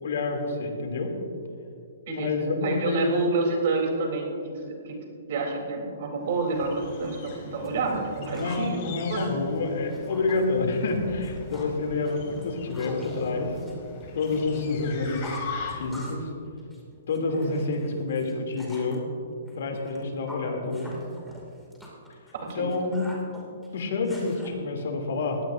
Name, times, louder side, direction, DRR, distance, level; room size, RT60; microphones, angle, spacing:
voice 1, 0.0-1.1 2.1-3.1 7.6-7.8 8.2-13.5 14.1-15.3 15.7-16.3 17.1-19.0 19.5-20.9 22.5-23.1 23.3-25.4, left 3 dB, 70° left, 2 dB, 2.9 m, -28 dB
voice 2, 2.1-4.3 4.9-5.0 5.3-8.8 9.1-9.3 22.4-22.9, right 3 dB, 55° right, 1 dB, 3.5 m, -28 dB
sound 1, 6.2-16.1, left 4 dB, 45° left, 2.6 m, -41 dB
sound 2, 6.6-6.7 7.0-8.7 9.0-10.4 10.7-11.0 11.2-11.8 12.1-14.6 14.9-16.3 16.6-19.0 19.5-24.5, equal, ahead, 2.6 m, -46 dB
20.0 x 16.5 x 2.7 m, 2.5 s
hypercardioid pair, 150°, 0 cm